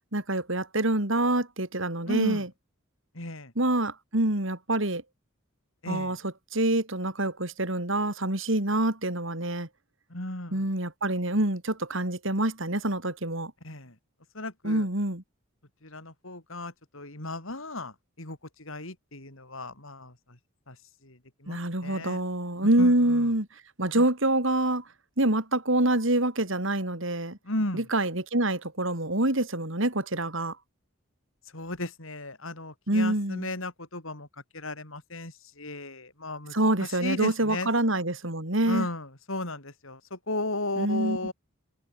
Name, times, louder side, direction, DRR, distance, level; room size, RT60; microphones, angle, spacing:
voice 1, 0.1-2.5 3.5-5.0 5.9-9.7 10.5-13.5 14.6-15.2 21.5-23.5 23.8-24.8 25.2-27.4 27.7-30.6 32.9-33.5 36.5-38.9 40.8-41.2, right 1 dB, 60° right, 3.4 m, -26 dB
voice 2, 2.1-2.4 3.2-3.5 5.8-6.2 10.1-10.7 13.6-13.9 14.3-14.9 15.8-20.1 20.7-20.8 21.0-21.6 21.8-22.2 22.8-23.3 23.9-24.0 27.4-27.8 31.5-34.3 34.5-36.5 36.8-37.7 38.7-41.3, left 2 dB, 65° left, 5.4 m, -35 dB
head